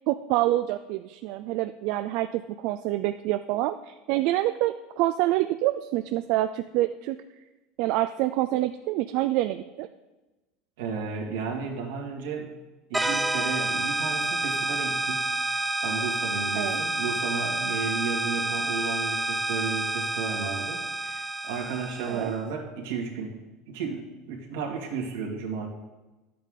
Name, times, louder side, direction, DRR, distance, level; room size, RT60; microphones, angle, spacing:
voice 1, 0.1-7.2 7.8-9.9 16.5-16.8 22.1-22.3, right 15 dB, 65° right, 10 dB, 0.4 m, -27 dB
voice 2, 10.8-12.5 12.9-25.7, right 5 dB, 85° right, 0 dB, 2.1 m, -33 dB
sound 1, 12.9-22.3, right 2 dB, 5° right, 0.6 m, -29 dB
11.0 x 8.4 x 3.7 m, 1.1 s
supercardioid pair, 120°, 0 cm